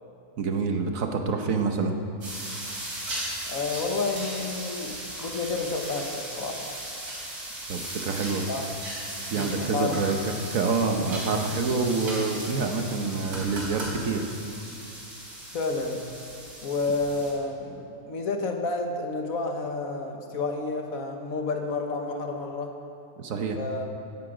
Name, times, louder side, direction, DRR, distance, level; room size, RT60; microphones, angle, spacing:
voice 1, 0.4-2.0 7.7-8.4 9.2-14.2 23.2-23.6, right 4 dB, 65° right, 5 dB, 1.3 m, -27 dB
sound 1, 2.2-17.3, right 1 dB, 90° right, 4.2 m, -37 dB
voice 2, 3.5-6.7 8.5-8.7 9.3-10.1 15.5-16.0 16.6-22.7 23.6-23.9, left 3 dB, 70° left, 3 dB, 1.6 m, -30 dB
16.5 x 10.0 x 5.0 m, 2.5 s
omnidirectional pair, 1.6 m